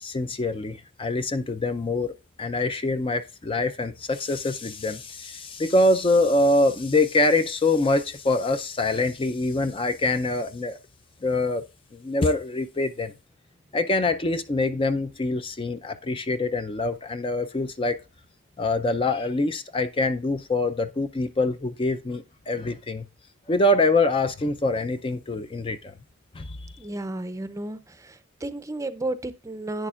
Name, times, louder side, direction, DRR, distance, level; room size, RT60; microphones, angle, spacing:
voice 1, 0.0-10.8 11.2-11.6 11.9-13.1 13.7-18.0 18.6-23.1 23.5-25.9 26.3-26.6, left 2 dB, 30° left, 0.5 m, -24 dB
voice 2, 26.8-28.1 28.4-29.9, right 2 dB, 15° right, 0.6 m, -32 dB
11.0 x 8.9 x 2.4 m
head